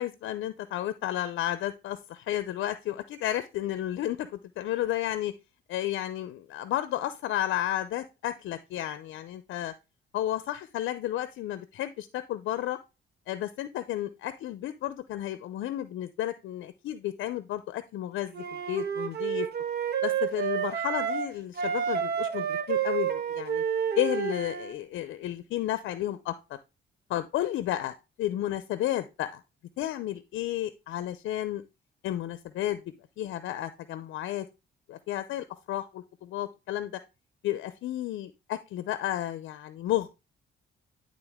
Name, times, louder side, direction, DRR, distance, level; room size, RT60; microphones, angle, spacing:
voice 1, 0.0-5.3 5.7-9.7 10.1-12.8 13.3-19.5 20.0-23.6 24.0-26.6 27.1-29.4 29.8-31.6 32.0-32.8 33.2-34.5 34.9-36.9 37.4-40.1, left 13 dB, 80° left, 13 dB, 0.5 m, -32 dB
Wind instrument woodwind instrument, 18.3-21.3 21.6-24.7, right 8 dB, 55° right, 1.1 m, -30 dB
11.0 x 3.8 x 3.5 m, 0.27 s
cardioid pair, 90°, 20 cm